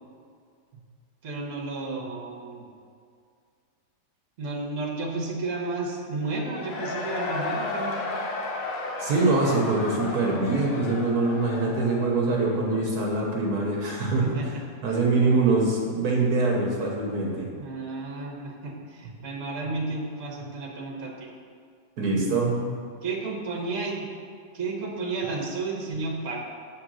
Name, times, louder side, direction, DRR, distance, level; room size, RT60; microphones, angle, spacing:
voice 1, 1.2-2.7 4.4-8.1 14.2-14.5 15.3-15.4 17.6-21.3 23.0-24.2 24.5-26.4, right 3 dB, 55° right, -1 dB, 1.4 m, -32 dB
Cheering / Crowd, 6.3-13.0, left 3 dB, 55° left, 1.2 m, -33 dB
voice 2, 9.0-14.4 14.8-17.5 22.0-22.7, right 3 dB, 70° right, -2 dB, 1.5 m, -24 dB
8.0 x 3.8 x 6.2 m, 2.2 s
omnidirectional pair, 1.8 m